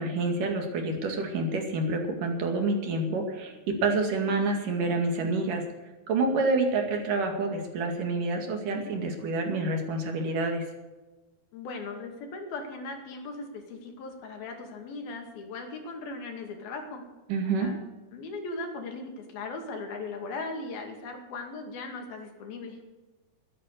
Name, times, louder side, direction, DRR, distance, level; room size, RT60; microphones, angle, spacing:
voice 1, 0.0-5.6 6.1-10.6 17.3-17.7, right 3 dB, 65° right, 3 dB, 3.8 m, -28 dB
voice 2, 11.5-17.0 17.6-17.8 18.1-22.8, left 3 dB, 90° left, 3 dB, 4.1 m, -38 dB
13.0 x 13.0 x 6.7 m, 1.2 s
omnidirectional pair, 4.1 m